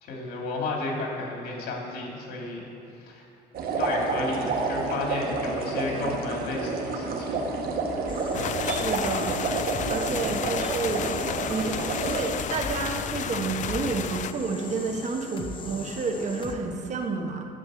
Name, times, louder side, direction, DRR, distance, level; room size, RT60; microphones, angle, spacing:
voice 1, 0.0-2.7 3.0-3.3 3.8-7.4, left 3 dB, 70° left, -1 dB, 3.0 m, -32 dB
sound 1, 3.5-12.3, right 3 dB, 60° right, 1.6 m, -29 dB
sound 2, 8.1-16.6, left 3 dB, 30° left, 1.0 m, -40 dB
sound 3, 8.3-14.3, left 9 dB, 45° left, 0.5 m, -32 dB
voice 2, 8.6-9.4 9.9-11.1 11.5-17.5, right 4 dB, 45° right, 4 dB, 1.2 m, -30 dB
11.0 x 7.2 x 7.8 m, 2.7 s
cardioid pair, 110°, 17 cm